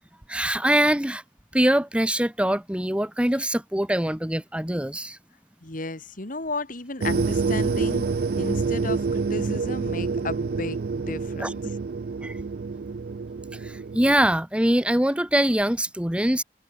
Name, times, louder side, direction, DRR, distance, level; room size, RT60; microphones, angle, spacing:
voice 1, 0.3-1.2 1.5-5.2 11.4-11.5 12.2-12.4 13.5-16.4, right 1 dB, 5° right, 1.0 m, -23 dB
voice 2, 5.6-8.1 8.4-11.6, left 2 dB, 50° left, 2.4 m, -34 dB
sound 1, 7.0-14.1, right 4 dB, 60° right, 0.4 m, -27 dB
head